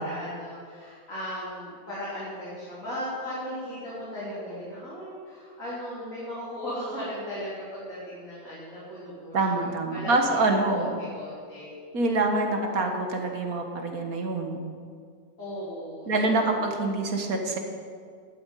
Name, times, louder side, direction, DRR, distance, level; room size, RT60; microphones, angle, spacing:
voice 1, 0.0-9.7 9.9-11.7 12.6-12.7 15.4-16.1 16.3-16.8, equal, 60° left, -10 dB, 4.2 m, -37 dB
voice 2, 9.3-10.9 11.9-14.6 16.1-17.6, right 2 dB, 70° right, 3 dB, 1.9 m, -25 dB
11.5 x 9.4 x 8.4 m, 2.2 s
omnidirectional pair, 1.6 m